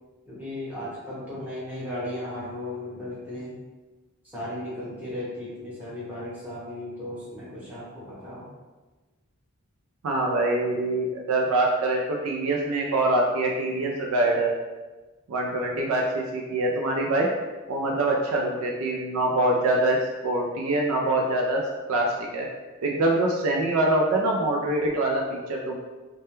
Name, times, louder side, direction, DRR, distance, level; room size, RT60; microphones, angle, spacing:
voice 1, 0.3-3.6 4.2-8.5, left 1 dB, 10° right, -9 dB, 0.8 m, -36 dB
voice 2, 10.0-14.5 15.3-17.3 17.7-20.0 20.2-21.6 21.9-22.5 22.8-25.8, right 2 dB, 75° right, 0 dB, 0.3 m, -24 dB
2.2 x 2.1 x 3.0 m, 1.2 s
head